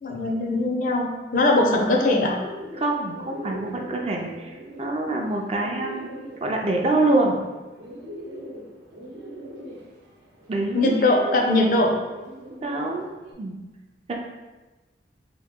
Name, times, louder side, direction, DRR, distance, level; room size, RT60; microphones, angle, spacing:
voice 1, 0.0-2.4 10.7-11.9, left 2 dB, 50° left, 1 dB, 0.5 m, -21 dB
Bird, 1.7-13.3, right 1 dB, 75° right, 0.8 m, -41 dB
voice 2, 2.8-6.1 6.4-7.4 10.5-10.9 12.6-13.1 13.4-13.6 14.1-14.2, right 2 dB, 35° right, 1 dB, 0.4 m, -25 dB
3.0 x 2.7 x 3.6 m, 1.2 s
head